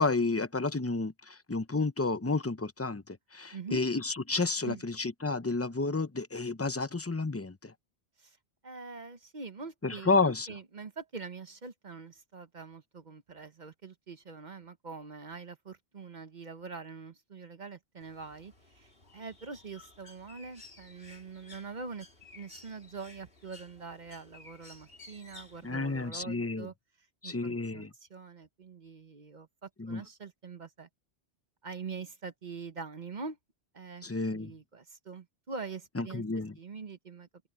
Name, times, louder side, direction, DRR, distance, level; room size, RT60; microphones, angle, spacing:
voice 1, 0.0-3.0 3.3-7.7 9.8-10.5 25.6-26.7 27.2-27.9 29.8-30.0 34.0-34.5 36.0-36.5, left 3 dB, 15° left, 0.6 m, -30 dB
voice 2, 3.5-3.8 4.6-4.8 8.2-8.4 8.6-22.1 22.3-26.7 27.2-30.9 31.6-33.4 33.7-34.1 34.3-36.2 36.6-37.3, right 4 dB, 45° right, 1.0 m, -44 dB
Bird, 18.0-26.1, left 2 dB, 60° left, 3.5 m, -55 dB
open air
omnidirectional pair, 1.1 m